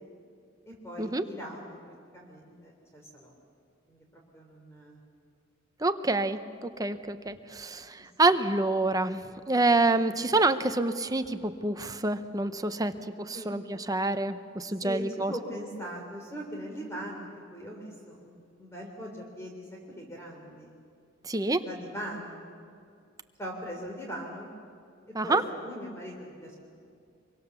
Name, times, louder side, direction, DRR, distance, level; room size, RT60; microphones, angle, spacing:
voice 1, 0.7-1.8 2.1-3.3 3.9-4.0 4.3-5.0 8.2-8.3 9.9-10.3 13.3-13.5 14.8-20.7 21.6-22.5 23.4-24.5 25.2-26.5, equal, 15° left, -1 dB, 3.3 m, -40 dB
voice 2, 5.8-15.3 21.2-21.6 25.1-25.4, right 2 dB, 20° right, 10 dB, 0.8 m, -27 dB
25.0 x 24.5 x 7.0 m, 2.4 s
head